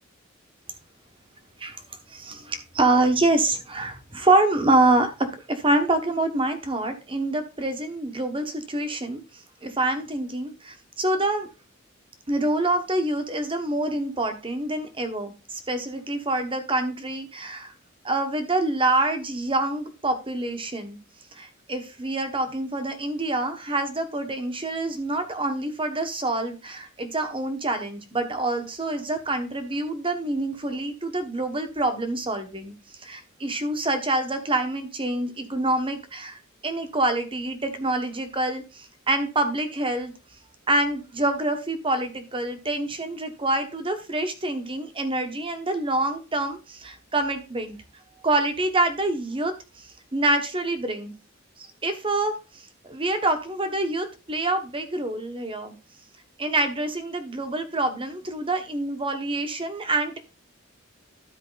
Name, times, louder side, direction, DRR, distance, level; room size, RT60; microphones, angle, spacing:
voice 1, 2.1-11.5 12.3-17.7 18.0-21.0 21.3-32.7 33.0-40.1 40.7-47.8 48.2-51.1 51.6-55.7 56.4-60.2, right 2 dB, 25° right, 7 dB, 1.3 m, -26 dB
12.5 x 4.7 x 4.0 m, 0.31 s
head